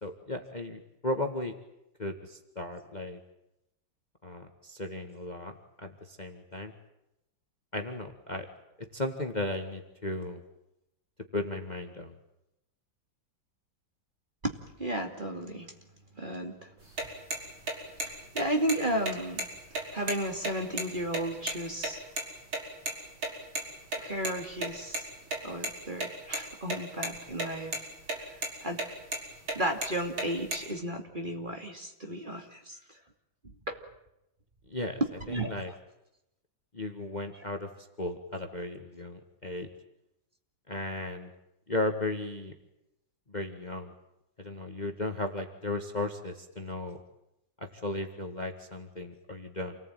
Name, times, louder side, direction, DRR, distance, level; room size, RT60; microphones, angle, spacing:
voice 1, 0.0-1.5 2.0-3.2 4.2-6.7 7.7-8.5 8.9-10.4 11.3-12.2 34.7-35.0 35.3-35.7 36.7-39.7 40.7-41.3 41.7-42.5 43.3-43.9 44.4-47.0 47.6-49.8, left 2 dB, 20° left, 5 dB, 1.9 m, -35 dB
voice 2, 14.4-15.7 16.2-16.7 18.0-19.5 19.9-22.0 24.0-25.1 25.4-27.9 28.3-28.8 29.5-32.8 33.7-33.8 35.3-35.6, right 1 dB, 25° right, 4 dB, 2.7 m, -34 dB
sound 1, 16.8-21.9 22.2-22.3 22.5-22.6 22.9-23.0 23.2-23.3 23.5-23.6 23.9-25.0 25.3-25.7 26.0-26.8 27.0-27.5 27.7-28.2 28.4-28.5 28.8-29.2 29.5-30.7, right 2 dB, 80° right, 5.9 m, -32 dB
29.0 x 19.0 x 9.3 m, 0.88 s
omnidirectional pair, 2.1 m